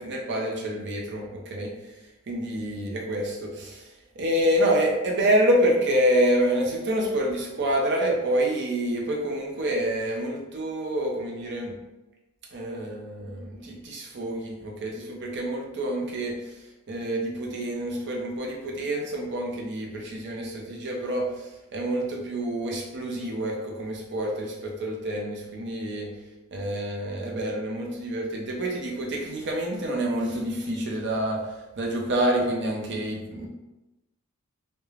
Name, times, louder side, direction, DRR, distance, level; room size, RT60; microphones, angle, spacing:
voice 1, 0.0-1.7 2.3-3.9 4.2-11.7 12.5-16.4 16.9-21.3 21.7-26.1 26.5-31.4 31.8-33.5, right 1 dB, 55° right, -1 dB, 0.6 m, -27 dB
2.4 x 2.1 x 3.1 m, 1.0 s
head